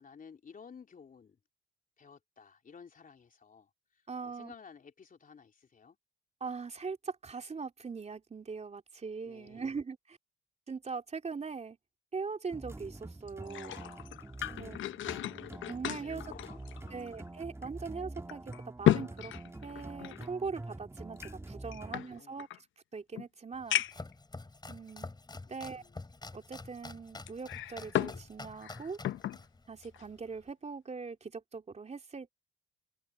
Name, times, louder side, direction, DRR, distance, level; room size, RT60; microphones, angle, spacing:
voice 1, 0.0-1.4 2.0-6.0 9.2-9.7 14.4-15.3 16.0-17.1 21.7-22.4 25.4-26.0, left 6 dB, 45° left, 3.3 m, -55 dB
voice 2, 4.1-4.5 6.4-10.2 10.7-11.8 12.1-13.8 14.5-14.8 15.7-16.2 16.9-19.3 19.6-22.5 22.9-23.8 24.7-25.1 25.5-25.8 26.3-29.0 29.7-32.3, right 5 dB, 35° right, 3.5 m, -41 dB
sound 1, 12.5-22.0, right 2 dB, 15° right, 1.8 m, -46 dB
sound 2, 13.3-17.3 17.6-17.7 18.3-20.3 21.2-22.6 23.2-23.3 23.7-24.1 24.9-25.0 27.3-28.2 28.5-29.4 29.8-30.0, left 13 dB, 75° left, 0.9 m, -34 dB
Domestic sounds home sounds, 23.5-30.5, left 3 dB, 20° left, 4.1 m, -48 dB
cardioid pair, 75°, 20 cm